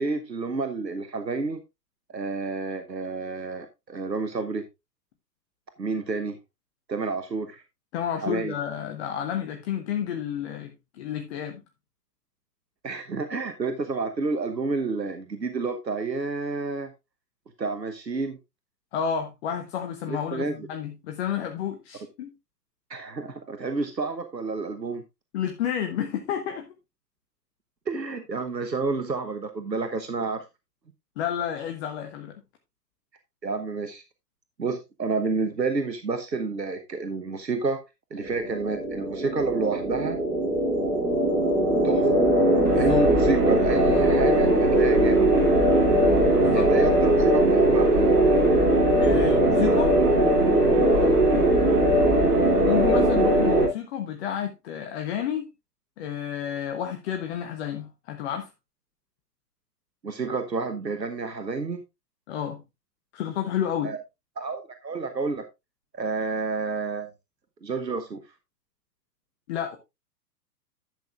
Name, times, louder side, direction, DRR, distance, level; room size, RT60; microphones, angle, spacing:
voice 1, 0.0-1.6 2.1-4.6 5.8-6.4 6.9-7.6 8.2-8.5 12.8-16.9 17.6-18.4 20.1-20.6 22.9-25.0 27.9-30.4 33.4-34.0 34.6-37.8 38.1-40.2 41.8-42.2 42.7-45.3 46.5-48.1 50.8-51.2 60.0-61.8 63.8-64.0 64.4-65.4 65.9-67.1 67.6-68.2, right 4 dB, 90° right, 1.1 m, -29 dB
voice 2, 7.9-11.6 18.9-22.3 25.3-26.7 31.2-32.3 42.7-43.0 46.3-46.7 49.0-49.9 52.7-55.5 56.0-58.5 62.3-62.6 63.1-63.9 69.5-69.8, left 9 dB, 40° left, 1.2 m, -30 dB
sound 1, 38.2-53.7, right 1 dB, 65° right, 3.2 m, -20 dB
11.5 x 8.0 x 2.5 m
figure-of-eight pair, 110°, 49 cm